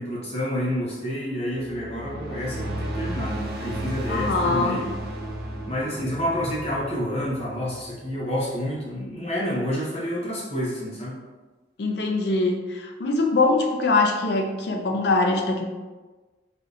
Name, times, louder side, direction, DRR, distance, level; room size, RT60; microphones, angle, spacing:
voice 1, 0.0-4.8 5.7-11.2, equal, 35° left, -6 dB, 0.8 m, -29 dB
sound 1, 1.5-8.1, right 1 dB, 60° right, 0.4 m, -33 dB
voice 2, 4.1-4.8 11.8-15.6, left 3 dB, 70° left, 3 dB, 0.4 m, -23 dB
3.5 x 2.7 x 2.4 m, 1.3 s
head